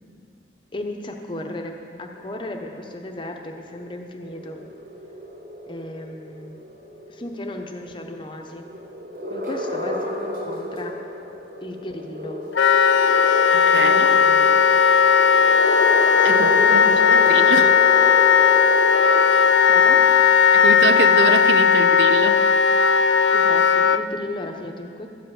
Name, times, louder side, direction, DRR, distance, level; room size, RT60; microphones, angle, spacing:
voice 1, 0.7-4.6 5.7-6.6 7.1-8.7 9.3-11.0 11.6-12.4 13.7-14.8 16.2-17.2 19.7-20.0 23.3-25.1, left 1 dB, 25° left, 3 dB, 0.8 m, -34 dB
sound 1, 2.1-19.5, equal, 50° right, 1.1 m, -32 dB
Wind instrument woodwind instrument, 12.5-24.0, left 6 dB, 90° left, 0.4 m, -16 dB
voice 2, 13.5-14.1 16.2-16.8 17.3-17.8 20.5-22.5, right 5 dB, 75° right, 11 dB, 0.5 m, -25 dB
13.0 x 5.7 x 8.7 m, 2.4 s
head